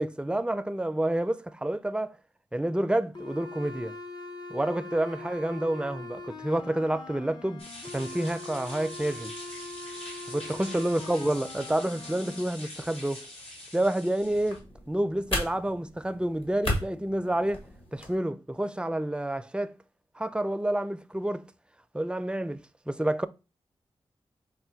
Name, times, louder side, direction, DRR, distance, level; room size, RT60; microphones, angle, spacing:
voice 1, 0.0-2.2 2.5-4.0 4.5-7.7 7.9-9.3 10.3-13.3 13.7-17.7 17.9-19.8 20.2-21.4 21.9-22.6 22.9-23.3, right 1 dB, 10° right, 0.4 m, -29 dB
sound 1, 3.1-12.4, left 2 dB, 40° left, 0.7 m, -42 dB
sound 2, 7.6-14.6, left 1 dB, 75° left, 1.9 m, -44 dB
sound 3, 14.2-18.2, left 1 dB, 60° left, 1.7 m, -35 dB
5.3 x 2.2 x 4.4 m
cardioid pair, 45°, 11 cm